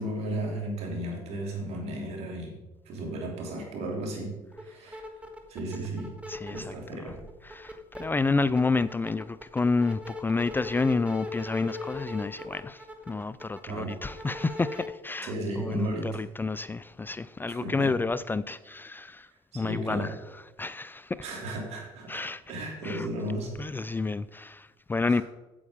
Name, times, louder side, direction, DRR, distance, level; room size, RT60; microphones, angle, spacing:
voice 1, 0.0-2.6 2.8-5.1 5.5-6.1 6.5-7.2 13.7-13.9 15.2-16.1 17.5-17.9 19.5-20.1 21.2-22.2 22.5-23.5 25.1-25.2, right 1 dB, 65° right, 3.0 m, -34 dB
sound 1, 4.5-4.6 4.9-6.7 7.1-8.0 8.4-14.9, left 1 dB, 10° right, 1.5 m, -40 dB
voice 2, 6.3-7.0 7.4-20.2 20.6-21.3 22.1-22.4 22.8-23.1 23.6-25.2, left 3 dB, 15° left, 0.4 m, -30 dB
8.7 x 8.2 x 5.0 m
supercardioid pair, 80°, 12 cm